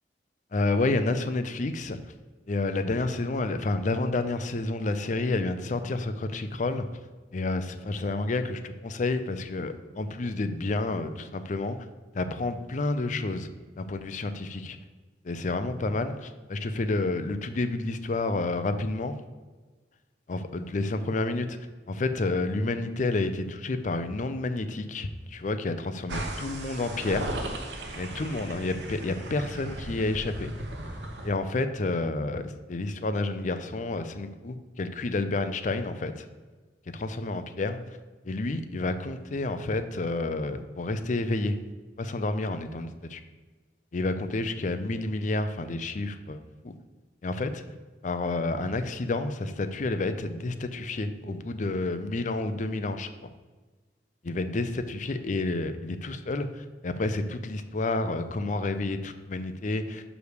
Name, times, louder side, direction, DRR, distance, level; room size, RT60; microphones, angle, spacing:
voice 1, 0.5-2.0 2.5-6.9 7.3-11.8 12.1-13.5 13.8-14.7 15.2-19.1 20.3-21.6 21.9-27.3 28.0-30.5 31.2-36.2 36.9-37.8 38.2-41.6 42.0-43.2 43.9-46.4 46.6-46.7 47.2-47.6 48.0-53.1 54.2-60.0, left 2 dB, 45° left, 10 dB, 0.5 m, -30 dB
sound 1, 26.1-31.3, right 1 dB, 90° right, 1.0 m, -36 dB
6.5 x 5.0 x 4.9 m, 1.3 s
head